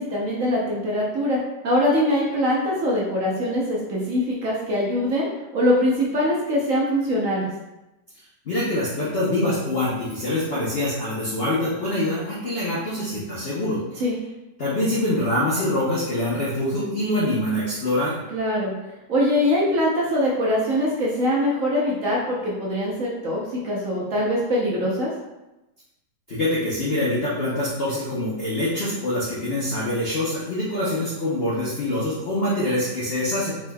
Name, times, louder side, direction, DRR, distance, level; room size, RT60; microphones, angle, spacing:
voice 1, 0.0-1.4 1.6-5.3 5.5-7.5 14.0-14.1 18.3-18.7 19.1-25.1, left 1 dB, 55° right, -5 dB, 1.0 m, -23 dB
voice 2, 8.5-13.8 14.6-18.2 26.3-33.6, left 1 dB, 45° left, -8 dB, 0.8 m, -25 dB
4.9 x 3.6 x 2.3 m, 1.0 s
omnidirectional pair, 2.0 m